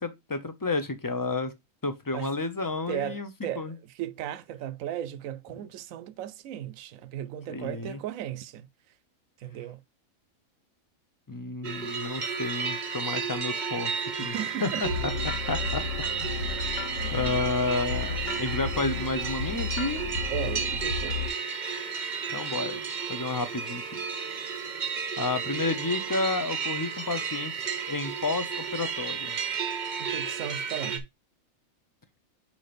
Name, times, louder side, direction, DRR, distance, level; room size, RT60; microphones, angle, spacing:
voice 1, 0.0-1.5 1.8-3.3 3.6-3.7 7.5-8.0 11.3-14.3 14.6-15.1 15.5-15.8 16.2-16.3 17.1-20.0 22.3-22.8 23.1-24.0 25.2-27.5 27.9-29.4, left 3 dB, 20° left, 0.5 m, -31 dB
voice 2, 2.9-8.7 9.4-9.8 14.2-14.9 17.0-17.4 20.3-21.2 30.0-31.0, right 11 dB, 80° right, 1.0 m, -36 dB
sound 1, 11.6-31.0, right 6 dB, 40° right, 0.8 m, -33 dB
sound 2, 14.8-21.3, left 5 dB, 60° left, 1.4 m, -33 dB
4.6 x 4.2 x 5.1 m
omnidirectional pair, 1.4 m